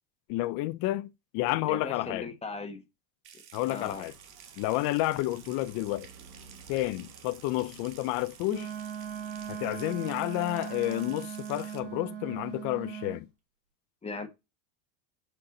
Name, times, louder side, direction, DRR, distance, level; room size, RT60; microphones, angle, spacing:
voice 1, 0.3-1.1 1.3-2.3 3.5-4.1 4.6-6.1 6.7-8.7 9.5-13.3, left 17 dB, 45° left, 0.6 m, -30 dB
voice 2, 1.7-2.8 3.7-4.1 14.0-14.3, left 3 dB, 15° left, 1.4 m, -38 dB
Water tap faucet / Sink (filling or washing) / Trickle dribble, 3.2-11.8, right 8 dB, 50° right, 1.4 m, -52 dB
sound 1, 3.8-9.8, right 4 dB, 85° right, 1.9 m, -55 dB
Wind instrument woodwind instrument, 8.4-13.2, right 9 dB, 65° right, 2.2 m, -39 dB
7.7 x 4.6 x 3.8 m
supercardioid pair, 130°, 48 cm